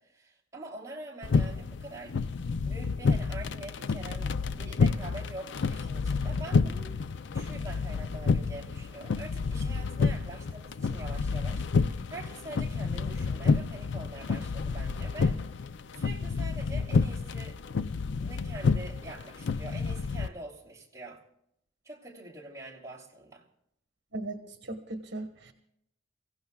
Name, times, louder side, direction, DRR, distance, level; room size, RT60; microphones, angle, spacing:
voice 1, 0.0-2.2 2.6-6.9 7.3-17.6 18.2-21.2 21.8-23.4, right 2 dB, 15° right, 3.0 m, -45 dB
sound 1, 1.2-20.3, left 4 dB, 65° left, 0.5 m, -29 dB
voice 2, 24.1-25.5, right 2 dB, 60° right, 1.3 m, -38 dB
29.5 x 16.0 x 2.3 m
head